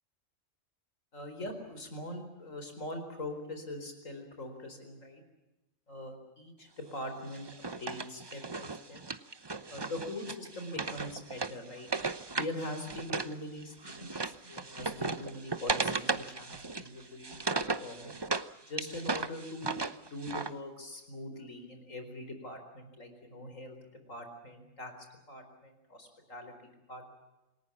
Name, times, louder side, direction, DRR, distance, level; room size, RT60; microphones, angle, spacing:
voice 1, 1.1-5.2 5.9-9.0 9.7-11.9 12.3-18.1 18.7-19.7 20.1-23.8 24.1-24.9 25.3-27.0, left 1 dB, 80° left, 6 dB, 4.9 m, -42 dB
Wood, 7.3-13.3 13.6-18.5 18.8-20.5, right 3 dB, 25° right, 0.8 m, -36 dB
28.0 x 19.5 x 7.2 m, 1.0 s
omnidirectional pair, 1.3 m